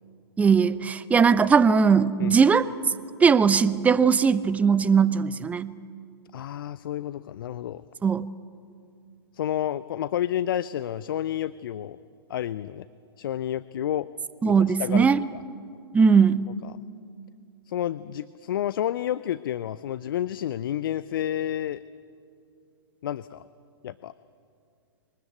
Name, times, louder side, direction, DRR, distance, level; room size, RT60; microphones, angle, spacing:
voice 1, 0.4-2.6 3.2-5.7 8.0-8.3 14.4-15.2 15.9-16.5, right 6 dB, 10° right, 16 dB, 0.6 m, -19 dB
voice 2, 6.3-7.8 9.3-12.0 12.3-12.9 13.2-14.1 14.4-15.2 16.6-16.7 17.7-21.8 23.0-23.5 23.8-24.1, left 11 dB, 55° left, 17 dB, 0.5 m, -30 dB
22.0 x 20.0 x 8.5 m, 2.4 s
figure-of-eight pair, 115°, 14 cm